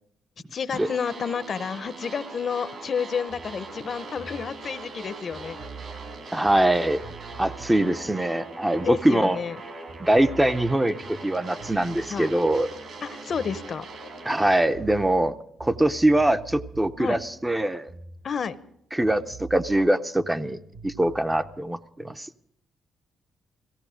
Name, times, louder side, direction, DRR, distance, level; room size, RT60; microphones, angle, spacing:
voice 1, 0.5-5.6 8.8-9.6 12.1-12.3 13.0-13.8 17.0-17.2 18.2-18.5, left 6 dB, 50° left, 14 dB, 0.6 m, -30 dB
sound 1, 0.7-14.7, right 3 dB, 60° right, 2.6 m, -41 dB
sound 2, 3.3-9.6 9.9-14.2 14.4-18.7 19.0-21.6, right 4 dB, 80° right, 5.2 m, -45 dB
voice 2, 6.3-7.0 7.4-9.4 10.0-11.0 11.2-12.7 14.3-17.9 18.9-20.6 20.8-22.3, right 1 dB, 10° right, 9 dB, 0.5 m, -23 dB
16.5 x 15.5 x 5.0 m, 0.74 s
cardioid pair, 90°, 0 cm